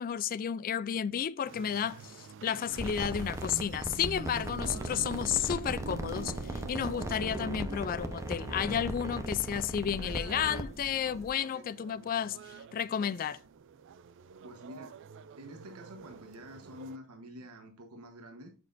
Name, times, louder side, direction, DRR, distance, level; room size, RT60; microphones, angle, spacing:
voice 1, 0.0-12.4 12.7-13.4, left 8 dB, 40° left, 0.3 m, -32 dB
sound 1, 1.4-17.0, right 5 dB, 60° right, 0.4 m, -46 dB
sound 2, 2.7-11.3, equal, 15° right, 0.8 m, -38 dB
voice 2, 14.4-15.0 15.4-18.5, equal, 80° right, 1.2 m, -48 dB
7.4 x 6.4 x 2.5 m
head